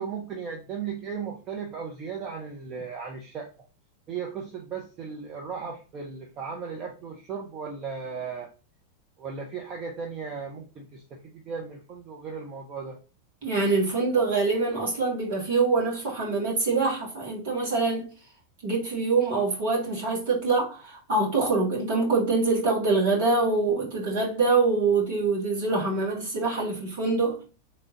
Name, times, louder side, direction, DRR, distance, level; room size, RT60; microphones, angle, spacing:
voice 1, 0.0-3.5 4.1-8.5 9.2-13.0, right 6 dB, 30° right, 0.8 m, -36 dB
voice 2, 13.4-18.1 18.6-27.4, right 3 dB, 55° right, 2.2 m, -25 dB
3.8 x 3.3 x 3.8 m
figure-of-eight pair, 90°, 0 cm